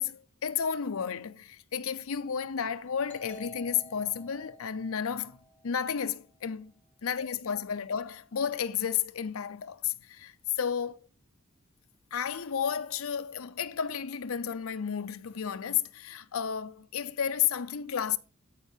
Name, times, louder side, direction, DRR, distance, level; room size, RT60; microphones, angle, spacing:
voice 1, 0.0-5.4 5.6-6.7 7.0-11.1 12.1-18.2, left 8 dB, 80° left, 0.6 m, -32 dB
Doorbell, 3.1-6.4, equal, 10° left, 3.1 m, -53 dB
13.5 x 4.9 x 4.5 m
head